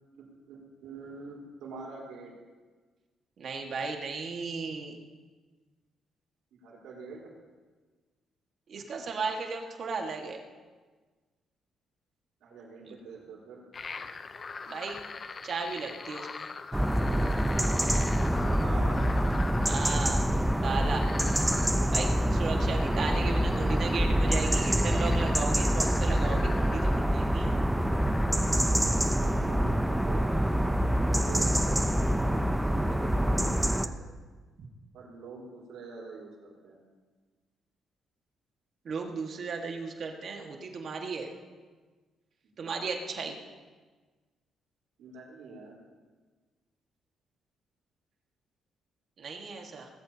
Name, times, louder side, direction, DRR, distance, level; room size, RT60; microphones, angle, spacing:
voice 1, 0.2-2.3 6.5-7.3 12.4-13.6 18.6-19.0 23.3-23.8 29.0-30.6 31.1-31.9 32.1-34.0 34.9-36.8 42.5-42.9 45.0-45.8, right 4 dB, 85° right, -2 dB, 4.2 m, -45 dB
voice 2, 3.4-5.0 8.7-10.4 14.7-15.0 15.4-16.5 19.7-20.2 20.6-21.1 21.9-27.6 38.9-41.3 42.6-43.4 49.2-49.9, right 4 dB, 55° right, 2 dB, 1.8 m, -35 dB
sound 1, 13.7-28.7, left 4 dB, 40° left, 0.7 m, -43 dB
sound 2, 16.7-33.9, equal, 5° right, 0.7 m, -26 dB
19.5 x 13.5 x 2.9 m, 1.4 s
cardioid pair, 90°, 0 cm